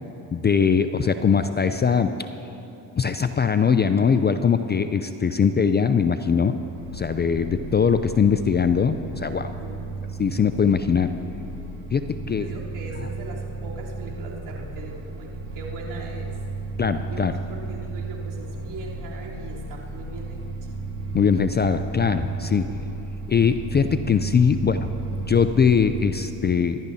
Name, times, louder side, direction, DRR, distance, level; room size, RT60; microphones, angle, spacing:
voice 1, 0.3-2.1 3.0-6.6 6.9-9.5 10.2-11.1 11.9-12.5 16.8-17.3 21.1-22.7 23.3-26.8, left 6 dB, 25° left, 10 dB, 0.4 m, -21 dB
sound 1, 6.6-26.1, right 3 dB, 85° right, 2.8 m, -34 dB
voice 2, 9.6-10.1 10.6-10.9 12.3-15.3 15.5-16.3 17.1-20.8, right 3 dB, 60° right, -5 dB, 3.5 m, -40 dB
25.0 x 12.0 x 2.8 m, 2.9 s
supercardioid pair, 70°, 45 cm